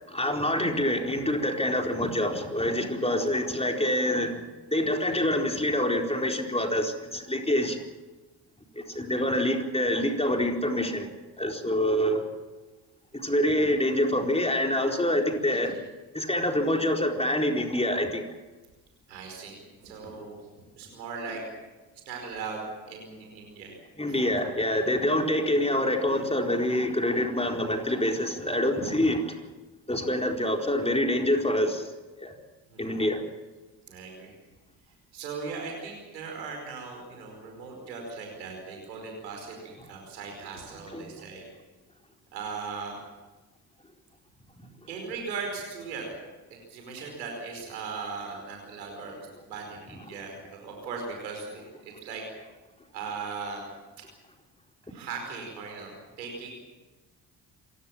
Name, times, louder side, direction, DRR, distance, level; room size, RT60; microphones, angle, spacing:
voice 1, 0.1-4.4 4.7-7.8 8.8-11.1 11.4-12.3 13.1-15.7 16.1-18.2 24.0-29.4 29.9-31.9 32.2-32.3 32.8-33.2 40.9-41.1 54.9-55.0, left 1 dB, 10° left, 3 dB, 4.4 m, -26 dB
voice 2, 19.1-20.4 20.8-21.4 22.1-23.7 24.1-24.2 24.7-24.8 32.7-32.9 33.9-34.3 35.1-41.5 42.3-43.0 44.9-46.1 46.7-49.2 49.4-52.2 52.9-53.6 54.9-55.9 56.2-56.5, right 5 dB, 85° right, 1 dB, 5.1 m, -38 dB
27.0 x 17.0 x 7.4 m, 1.2 s
figure-of-eight pair, 45°, 50 cm